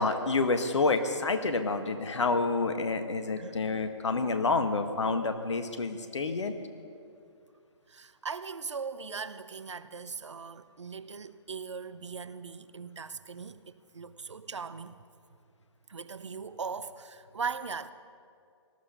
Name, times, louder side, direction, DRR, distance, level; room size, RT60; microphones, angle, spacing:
voice 1, 0.0-6.5, left 3 dB, 70° left, 8 dB, 1.5 m, -28 dB
voice 2, 7.9-15.0 15.9-17.9, right 5 dB, 75° right, 14 dB, 0.8 m, -39 dB
18.5 x 14.0 x 5.6 m, 2.4 s
figure-of-eight pair, 130°, 16 cm